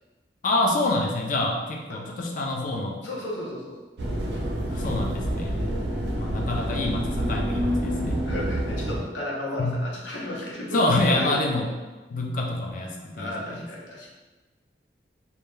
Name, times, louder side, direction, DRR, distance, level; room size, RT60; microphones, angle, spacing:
voice 1, 0.4-3.0 4.7-5.6 6.1-8.2 9.6-9.8 10.7-11.7 12.1-13.6, left 2 dB, 50° left, 0 dB, 0.4 m, -26 dB
voice 2, 3.0-3.7 5.5-5.9 8.3-11.3 13.1-14.1, left 1 dB, 90° left, -3 dB, 0.7 m, -34 dB
sound 1, 4.0-9.0, equal, 80° right, 0.6 m, -27 dB
2.2 x 2.2 x 3.1 m, 1.2 s
head